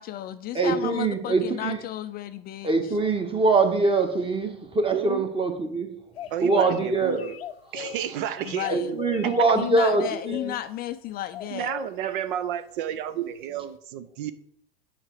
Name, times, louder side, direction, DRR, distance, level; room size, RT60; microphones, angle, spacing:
voice 1, 0.0-3.0 8.4-9.0 9.5-11.7, left 13 dB, 30° left, 11 dB, 0.4 m, -33 dB
voice 2, 0.5-1.8 2.6-5.9 6.4-7.3 8.7-10.5, right 3 dB, 20° right, 5 dB, 1.6 m, -23 dB
voice 3, 4.9-5.3 6.3-7.4 7.7-9.0 11.5-14.3, right 10 dB, 60° right, 13 dB, 0.7 m, -31 dB
sound 1, 6.1-6.8 7.1-8.1 8.4-9.4 9.9-10.5 11.3-11.9, left 10 dB, 85° left, 0.5 m, -38 dB
7.3 x 5.8 x 4.8 m, 0.70 s
hypercardioid pair, 95°, 30 cm